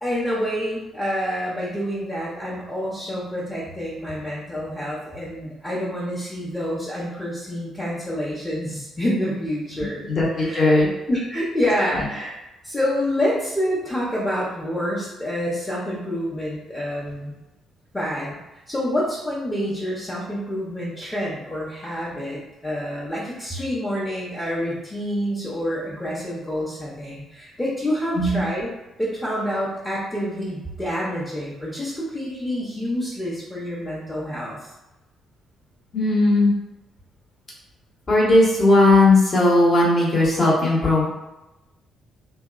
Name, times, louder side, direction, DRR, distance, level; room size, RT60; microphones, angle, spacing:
voice 1, 0.0-10.1 10.4-10.6 11.1-12.4 12.6-17.3 17.9-18.4 18.7-28.7 29.0-34.7, equal, 15° left, -8 dB, 0.8 m, -27 dB
voice 2, 10.1-10.9 11.9-12.0 28.1-28.4 35.9-36.5 38.1-41.1, left 2 dB, 40° left, -5 dB, 1.0 m, -17 dB
2.7 x 2.2 x 2.4 m, 0.98 s
figure-of-eight pair, 45°, 0 cm